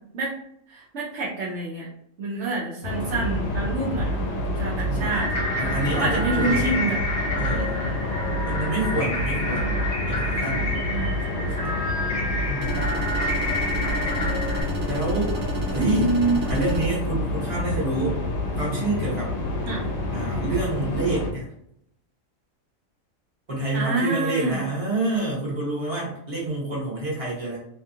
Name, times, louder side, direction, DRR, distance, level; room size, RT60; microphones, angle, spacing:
voice 1, 0.7-1.9 2.2-5.3 5.9-7.0 10.9-11.7 15.8-16.4 19.6-19.9 23.7-24.6, right 2 dB, 65° right, -6 dB, 0.9 m, -27 dB
sound 1, 2.8-21.3, left 1 dB, 75° left, 0.9 m, -28 dB
voice 2, 4.8-5.2 5.6-6.7 7.4-7.8 8.4-10.8 12.4-12.9 14.9-15.3 15.7-16.1 16.4-18.2 18.6-19.4 20.1-21.5 23.5-27.6, right 2 dB, 25° right, -5 dB, 1.1 m, -28 dB
sound 2, 5.0-14.6, left 1 dB, 35° left, 0.6 m, -29 dB
sound 3, 12.6-16.9, right 1 dB, 85° right, 1.0 m, -32 dB
2.7 x 2.3 x 2.7 m, 0.74 s
omnidirectional pair, 1.4 m